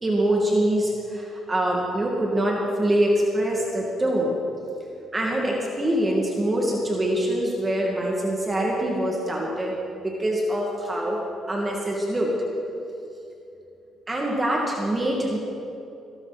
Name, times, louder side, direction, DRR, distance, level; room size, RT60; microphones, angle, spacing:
voice 1, 0.0-4.3 5.1-11.2 11.5-12.3 14.1-15.4, right 1 dB, 25° right, -2 dB, 2.2 m, -24 dB
21.5 x 12.5 x 4.2 m, 2.9 s
cardioid pair, 90°, 0 cm